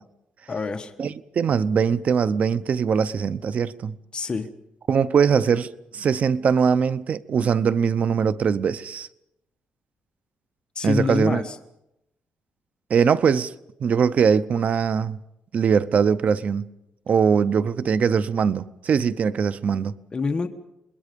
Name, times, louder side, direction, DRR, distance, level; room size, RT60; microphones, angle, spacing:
voice 1, 0.5-0.9 4.1-4.5 10.7-11.6 20.1-20.5, left 4 dB, 30° left, 1.2 m, -26 dB
voice 2, 1.0-3.9 4.9-9.1 10.8-11.4 12.9-13.5 13.8-15.2 15.5-16.6 17.1-19.9, right 6 dB, 50° right, 0.7 m, -21 dB
27.5 x 21.0 x 5.2 m
cardioid pair, 120°, 3 cm